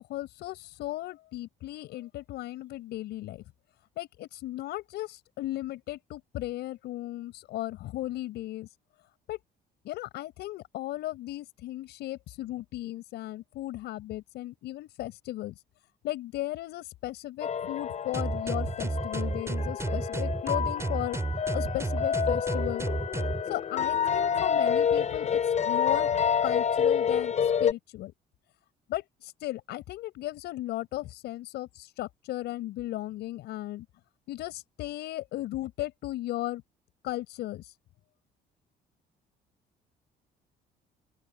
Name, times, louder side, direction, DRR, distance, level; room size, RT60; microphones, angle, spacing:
voice 1, 0.1-3.4 4.0-8.7 9.3-9.4 9.8-15.5 16.0-21.2 21.5-22.9 23.5-25.4 25.7-27.3 27.6-28.1 28.9-33.9 34.3-36.6 37.0-37.7, left 15 dB, 80° left, 7.3 m, -36 dB
sound 1, 17.4-27.7, left 7 dB, 45° left, 4.0 m, -28 dB
sound 2, 18.1-23.4, right 3 dB, 15° right, 3.9 m, -31 dB
open air
cardioid pair, 110°, 17 cm